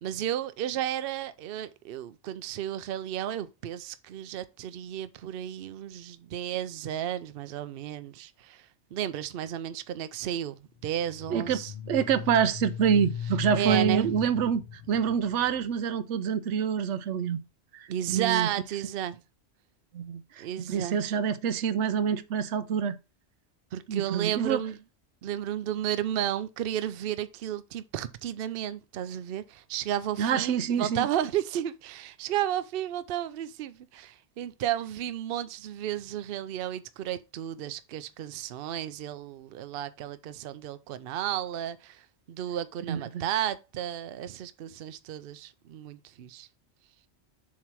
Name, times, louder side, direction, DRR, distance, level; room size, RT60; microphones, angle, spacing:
voice 1, 0.0-8.7 8.9-11.7 13.5-14.1 17.9-19.2 20.4-21.0 23.7-24.8 25.2-46.5, right 11 dB, 60° right, 0.7 m, -33 dB
sound 1, 10.9-15.7, left 8 dB, 55° left, 1.1 m, -38 dB
voice 2, 11.3-11.6 11.9-17.4 17.7-18.5 19.9-23.0 23.9-24.6 30.2-31.1 42.9-43.2, right 7 dB, 85° right, 0.9 m, -27 dB
7.3 x 2.9 x 4.5 m
omnidirectional pair, 1.2 m